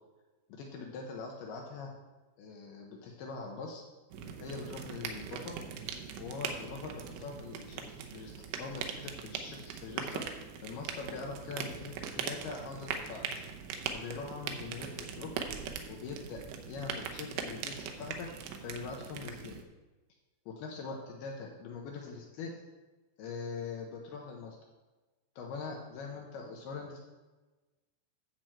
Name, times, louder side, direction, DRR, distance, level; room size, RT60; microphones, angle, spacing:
voice 1, 0.5-1.9 2.4-3.8 4.4-5.6 6.2-10.2 10.6-13.2 13.9-15.3 15.9-16.4 16.7-18.3 18.6-19.6 20.5-22.5 23.2-24.6 25.4-27.0, left 4 dB, 85° left, 0 dB, 2.2 m, -42 dB
sound 1, 4.1-19.6, right 7 dB, 80° right, 2.6 m, -41 dB
10.5 x 4.5 x 7.6 m, 1.2 s
omnidirectional pair, 5.8 m